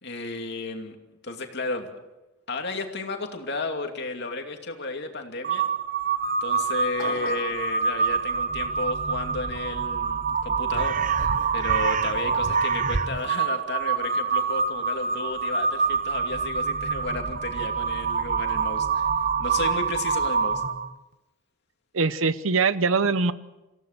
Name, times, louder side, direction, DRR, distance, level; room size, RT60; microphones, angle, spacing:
voice 1, 0.0-1.0 1.2-1.9 2.5-5.7 6.4-11.0 11.5-19.1 19.4-20.6, left 3 dB, 55° left, 4 dB, 2.6 m, -33 dB
Crow, 5.4-20.9, right 5 dB, 40° right, 0.7 m, -26 dB
sound 1, 7.0-7.6, left 3 dB, 85° left, 2.1 m, -36 dB
voice 2, 21.9-23.3, right 4 dB, 70° right, 14 dB, 0.8 m, -22 dB
27.5 x 16.5 x 6.7 m, 1.0 s
head